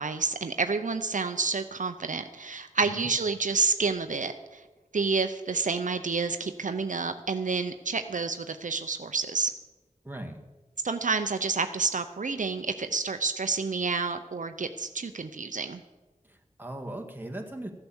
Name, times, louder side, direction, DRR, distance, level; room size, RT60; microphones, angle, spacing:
voice 1, 0.0-4.6 4.9-9.5 10.8-15.8, right 4 dB, 75° right, 9 dB, 0.6 m, -29 dB
voice 2, 10.0-10.4 16.2-17.7, right 1 dB, 15° right, 2 dB, 1.8 m, -39 dB
14.5 x 7.9 x 7.1 m, 1.2 s
wide cardioid pair, 50°, 13 cm